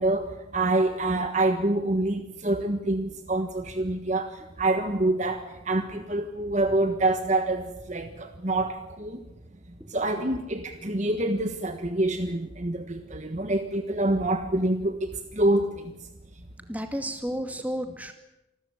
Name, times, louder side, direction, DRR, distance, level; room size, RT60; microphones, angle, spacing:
voice 1, 0.0-4.3 4.6-9.2 9.9-15.9, right 2 dB, 35° right, 7 dB, 1.4 m, -26 dB
voice 2, 16.7-18.1, equal, 10° right, 6 dB, 2.2 m, -32 dB
26.5 x 13.5 x 9.5 m, 0.94 s
head